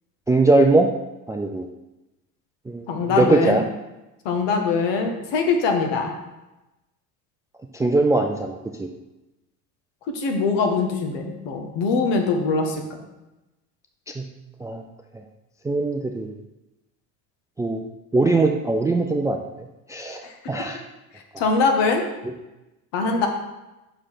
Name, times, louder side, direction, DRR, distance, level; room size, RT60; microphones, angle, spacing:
voice 1, 0.3-0.9 1.3-1.7 2.7-3.6 7.7-8.9 14.2-14.3 14.6-14.8 15.6-16.3 17.6-17.8 18.1-19.4 19.9-20.8, right 2 dB, 10° right, 3 dB, 0.3 m, -21 dB
voice 2, 2.9-3.6 4.2-6.1 10.1-12.8 20.2-20.3 21.4-22.0 22.9-23.3, left 4 dB, 60° left, 3 dB, 1.6 m, -22 dB
6.5 x 4.9 x 5.7 m, 1.0 s
hypercardioid pair, 85°, 48 cm